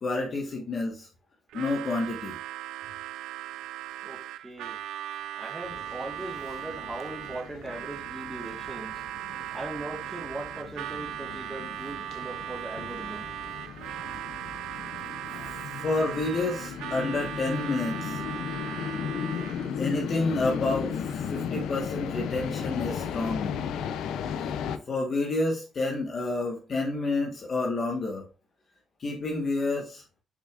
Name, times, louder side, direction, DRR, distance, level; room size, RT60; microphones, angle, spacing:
voice 1, 0.0-1.1 1.5-2.4 15.8-18.2 19.8-23.6 24.9-28.2 29.0-30.0, left 3 dB, 45° left, 1.4 m, -29 dB
Harmonica, 1.5-19.8, right 12 dB, 85° right, 0.4 m, -38 dB
voice 2, 4.0-4.8 5.3-9.0 9.5-13.3, right 2 dB, 15° right, 1.6 m, -39 dB
sound 1, 5.6-24.8, left 7 dB, 85° left, 0.5 m, -36 dB
6.8 x 6.1 x 2.5 m
cardioid pair, 90°, 0 cm